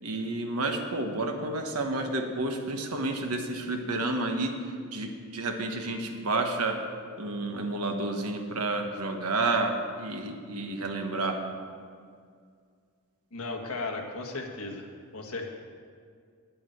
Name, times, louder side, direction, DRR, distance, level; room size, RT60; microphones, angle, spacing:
voice 1, 0.0-4.6 4.9-6.8 7.2-11.4, right 2 dB, 80° right, 4 dB, 1.4 m, -30 dB
voice 2, 13.3-14.9 15.1-15.5, left 3 dB, 70° left, 2 dB, 1.6 m, -35 dB
9.8 x 8.5 x 7.9 m, 2.1 s
head